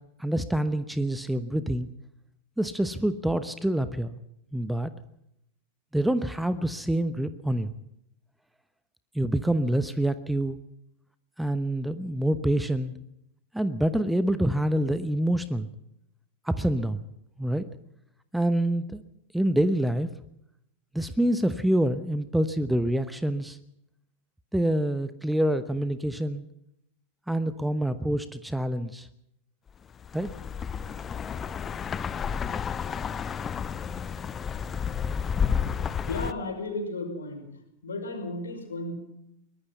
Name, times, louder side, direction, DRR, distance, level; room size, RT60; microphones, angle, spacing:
voice 1, 0.2-1.9 2.6-4.1 4.5-4.9 5.9-7.7 9.1-10.6 11.4-12.9 13.5-15.7 16.4-17.0 17.4-17.6 18.3-19.0 19.3-20.1 20.9-23.6 24.5-26.4 27.3-29.1 30.1-30.3, right 1 dB, 5° right, 13 dB, 1.0 m, -26 dB
sound 1, 30.0-36.3, left 7 dB, 20° left, 0.8 m, -31 dB
voice 2, 36.1-38.9, left 2 dB, 70° left, 4 dB, 5.5 m, -34 dB
23.0 x 20.0 x 5.5 m, 0.79 s
figure-of-eight pair, 90°, 0 cm